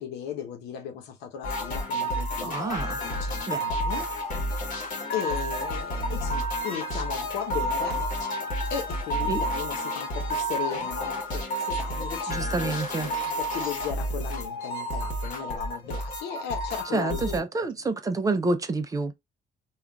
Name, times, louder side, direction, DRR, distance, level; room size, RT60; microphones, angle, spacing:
voice 1, 0.0-2.6 3.0-4.1 5.1-8.1 8.7-17.7, left 8 dB, 85° left, 0.8 m, -36 dB
sound 1, 1.4-17.4, equal, 50° left, 1.1 m, -30 dB
voice 2, 2.4-3.0 3.5-3.6 9.3-9.4 12.3-13.1 16.9-19.1, right 3 dB, 20° right, 0.5 m, -28 dB
3.7 x 2.3 x 2.2 m
cardioid pair, 110°, 17 cm